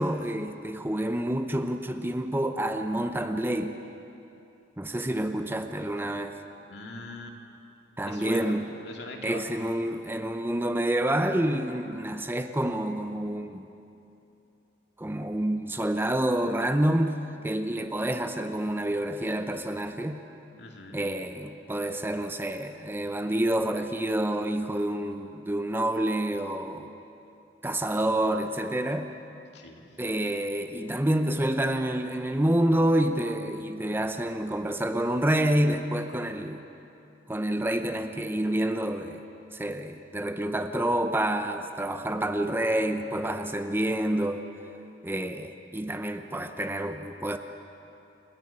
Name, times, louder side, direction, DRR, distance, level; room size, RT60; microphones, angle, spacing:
voice 1, 0.0-3.8 4.8-6.4 8.0-8.7 9.2-13.7 15.0-20.2 20.9-26.9 27.6-29.1 30.0-36.6 37.3-39.2 39.5-44.4 45.0-47.4, right 1 dB, 10° right, 7 dB, 0.7 m, -28 dB
voice 2, 6.7-7.4 8.0-9.5 20.6-21.0 29.5-29.8, left 2 dB, 65° left, 2 dB, 2.4 m, -41 dB
29.5 x 10.5 x 8.8 m, 2.8 s
head